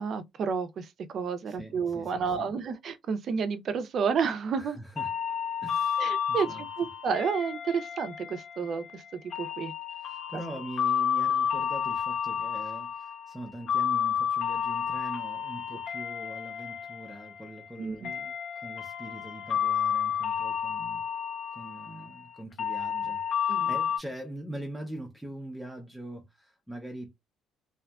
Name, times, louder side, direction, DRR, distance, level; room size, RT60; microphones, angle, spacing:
voice 1, 0.0-4.8 6.0-9.0 9.4-9.7 17.8-18.1 23.5-23.7, right 6 dB, 50° right, 0.5 m, -31 dB
voice 2, 1.5-2.5 4.6-5.1 5.6-6.7 9.9-21.0 21.5-27.1, right 1 dB, 5° right, 0.5 m, -43 dB
sound 1, 5.0-24.0, left 8 dB, 55° left, 0.7 m, -31 dB
2.7 x 2.4 x 2.2 m
cardioid pair, 105°, 0 cm